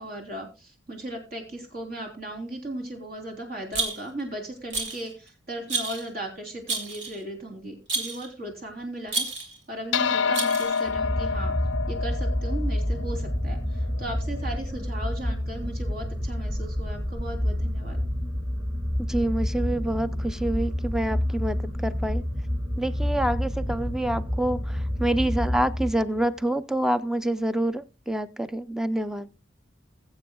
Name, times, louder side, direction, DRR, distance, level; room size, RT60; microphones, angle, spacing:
voice 1, 0.0-11.5 11.9-18.0, right 1 dB, 50° right, 3 dB, 3.5 m, -37 dB
Rattle, 3.7-4.2 4.7-5.1 5.7-6.1 6.7-7.2 7.9-8.3 9.1-9.6 10.3-10.9, right 3 dB, 70° right, 2.8 m, -30 dB
sound 1, 9.9-14.6, left 6 dB, 80° left, 0.5 m, -29 dB
sound 2, 10.9-26.2, equal, 25° right, 4.2 m, -29 dB
voice 2, 19.1-22.2 22.8-29.3, right 1 dB, 5° right, 13 dB, 0.5 m, -27 dB
21.5 x 7.8 x 2.3 m, 0.28 s
head